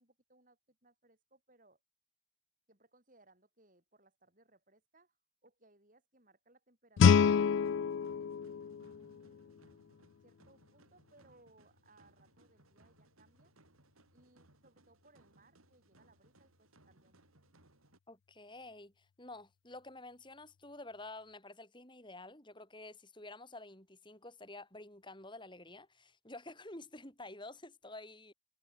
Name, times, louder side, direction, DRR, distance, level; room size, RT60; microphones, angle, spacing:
voice 1, 0.0-1.8 2.7-5.1 5.4-9.6 10.2-13.5 14.1-17.2, right 2 dB, 40° right, 6.2 m, -67 dB
Guitar, 7.0-9.7, left 6 dB, 60° left, 0.3 m, -28 dB
sound 1, 7.6-18.0, right 2 dB, 85° right, 5.3 m, -67 dB
voice 2, 18.1-28.3, left 2 dB, 20° left, 5.1 m, -50 dB
head